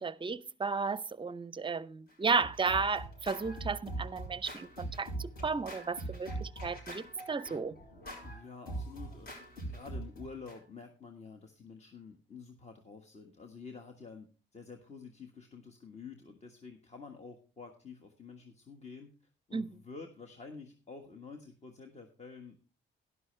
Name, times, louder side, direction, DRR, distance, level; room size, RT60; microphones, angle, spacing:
voice 1, 0.0-7.8 19.5-19.7, right 4 dB, 25° right, 0.6 m, -34 dB
Scratching (performance technique), 2.1-10.6, right 2 dB, 55° left, 7.2 m, -42 dB
voice 2, 8.2-9.3 9.7-19.1 19.5-22.7, left 4 dB, 35° left, 1.5 m, -49 dB
12.5 x 11.5 x 3.3 m
cardioid pair, 90°, 20 cm